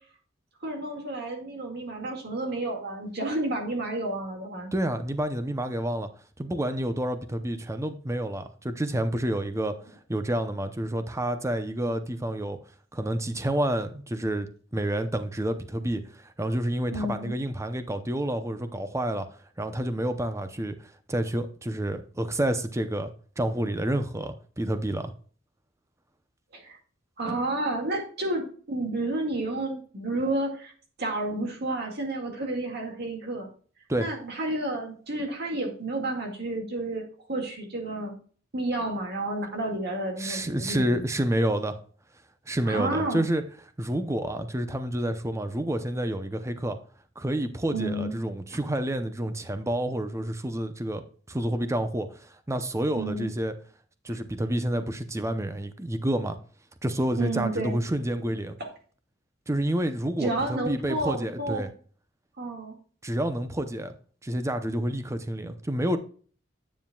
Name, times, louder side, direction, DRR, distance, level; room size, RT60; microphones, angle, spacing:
voice 1, 0.6-4.7 16.9-17.4 26.5-26.8 27.2-30.7 31.0-33.5 34.0-38.2 38.5-41.1 42.7-43.2 47.7-48.1 53.0-53.3 57.2-57.8 60.2-61.6 62.4-62.8, right 2 dB, 55° right, 2.0 m, -31 dB
voice 2, 4.7-6.1 6.4-9.8 10.1-12.6 12.9-19.3 19.6-20.8 21.1-25.1 33.9-34.1 40.2-41.8 42.5-43.4 43.8-46.8 47.2-53.5 54.0-56.4 56.8-58.6 59.5-61.7 63.0-63.9 64.2-66.0, right 1 dB, 15° right, 0.7 m, -29 dB
9.8 x 7.3 x 2.3 m
head